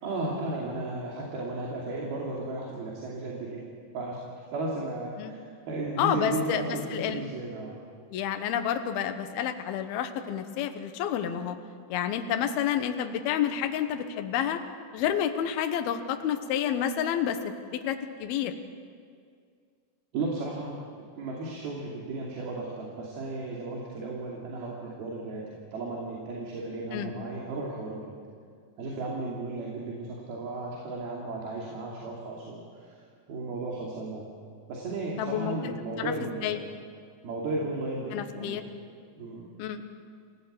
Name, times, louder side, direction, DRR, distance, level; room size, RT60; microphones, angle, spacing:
voice 1, 0.0-4.2 4.5-7.8 20.1-28.2 28.8-33.0 33.3-34.3 34.7-36.6 37.2-38.6 39.2-39.5, right 2 dB, 60° right, -3 dB, 4.5 m, -35 dB
voice 2, 6.0-7.2 8.1-11.6 11.9-14.6 14.9-18.5 26.9-27.1 35.2-35.7 36.0-36.1 36.4-36.6 38.1-38.6 39.6-39.8, left 9 dB, 70° left, 7 dB, 2.8 m, -29 dB
27.5 x 17.0 x 8.2 m, 2.2 s
omnidirectional pair, 5.2 m